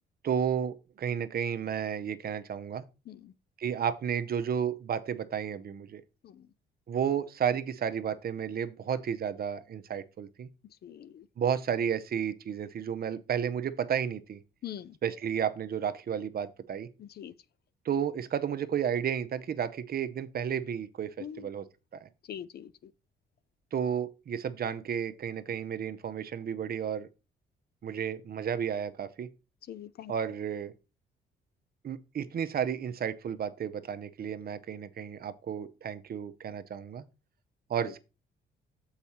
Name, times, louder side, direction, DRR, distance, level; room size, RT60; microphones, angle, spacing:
voice 1, 0.2-2.8 3.6-6.0 6.9-10.5 11.4-14.4 15.0-16.9 17.8-21.6 21.9-22.1 23.7-27.1 27.8-29.3 30.1-30.7 31.8-37.0 37.7-38.0, right 8 dB, 50° right, 0.7 m, -32 dB
voice 2, 10.8-11.3 14.6-15.0 17.0-17.3 21.2-21.5 22.3-22.9 29.7-30.1, left 10 dB, 55° left, 0.5 m, -43 dB
6.9 x 4.8 x 4.3 m
cardioid pair, 90°, 20 cm